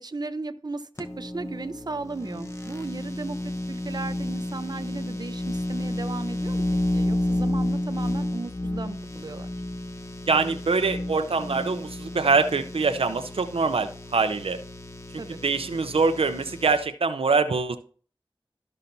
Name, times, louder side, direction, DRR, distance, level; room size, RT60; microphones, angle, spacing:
voice 1, 0.0-6.7 6.9-9.5 15.2-15.4, right 3 dB, 45° right, 0.6 m, -36 dB
sound 1, 1.0-16.8, left 1 dB, 30° left, 1.0 m, -31 dB
voice 2, 10.3-14.6 15.4-17.8, right 4 dB, 90° right, 0.6 m, -24 dB
13.0 x 5.6 x 2.7 m
wide cardioid pair, 50°, 9 cm